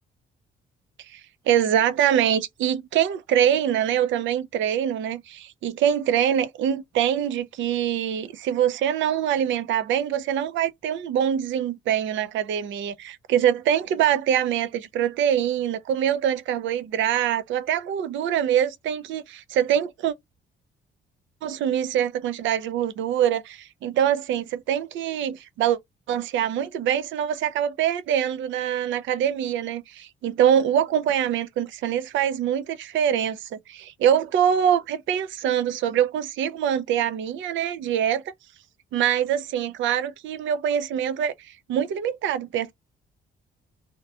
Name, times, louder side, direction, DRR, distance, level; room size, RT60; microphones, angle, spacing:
voice 1, 1.5-20.1 21.4-25.8 26.1-38.2 38.9-42.7, right 9 dB, 75° right, 0.4 m, -24 dB
2.7 x 2.2 x 2.3 m
cardioid pair, 90°, 20 cm